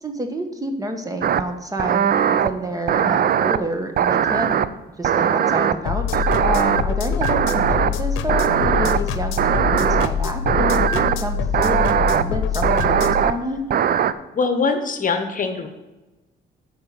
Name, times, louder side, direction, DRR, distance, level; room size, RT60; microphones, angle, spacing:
voice 1, 0.0-4.6 5.0-13.6, right 1 dB, 15° right, 5 dB, 1.3 m, -28 dB
sound 1, 1.2-1.4 1.8-2.5 2.9-3.6 4.0-4.7 5.0-5.7 6.1-6.8 7.2-7.9 8.3-9.0 9.4-10.1 10.5-11.2 11.5-12.2 12.6-13.3 13.7-14.1, right 9 dB, 50° right, 0.5 m, -19 dB
sound 2, 5.9-13.2, left 6 dB, 90° left, 0.8 m, -24 dB
voice 2, 14.3-15.7, left 4 dB, 40° left, 8 dB, 1.1 m, -22 dB
8.8 x 4.8 x 6.9 m, 1.1 s
cardioid pair, 90°, 20 cm